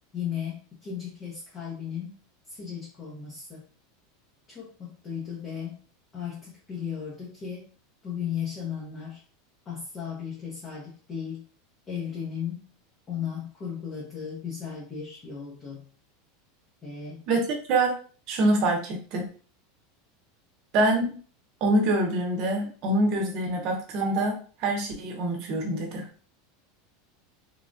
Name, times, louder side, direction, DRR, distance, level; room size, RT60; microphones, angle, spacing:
voice 1, 0.1-2.1 2.5-3.6 4.5-5.8 6.1-7.6 8.0-9.2 9.7-11.4 11.9-12.6 13.1-15.8 16.8-17.2, left 8 dB, 25° left, -5 dB, 0.8 m, -35 dB
voice 2, 17.3-17.9 18.3-19.3 20.7-21.2 21.6-26.1, right 1 dB, 45° right, 2 dB, 0.9 m, -25 dB
3.2 x 2.3 x 2.5 m, 0.40 s
supercardioid pair, 155°, 0 cm